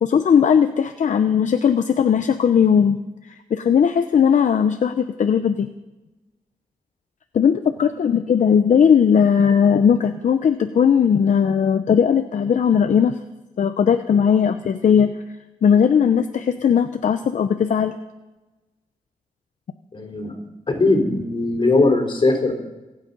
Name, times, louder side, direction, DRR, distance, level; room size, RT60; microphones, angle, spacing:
voice 1, 0.0-3.0 3.5-5.7 7.3-13.2 13.6-15.1 15.6-17.9, left 7 dB, 60° left, 8 dB, 0.7 m, -18 dB
voice 2, 19.9-20.3 20.7-22.5, left 2 dB, 35° left, 2 dB, 3.6 m, -19 dB
26.0 x 9.0 x 5.4 m, 1.1 s
wide cardioid pair, 140°, 14 cm